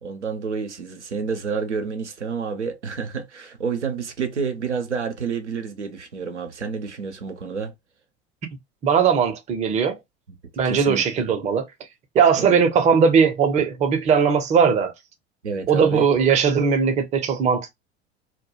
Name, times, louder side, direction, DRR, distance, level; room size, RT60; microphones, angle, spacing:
voice 1, 0.0-7.7 10.6-11.3 12.4-12.6 15.4-16.0, right 5 dB, 85° right, 0.5 m, -29 dB
voice 2, 8.8-10.0 10.6-11.7 12.1-14.9 15.7-17.7, right 6 dB, 20° right, 0.5 m, -19 dB
2.1 x 2.1 x 2.8 m
figure-of-eight pair, 75°, 34 cm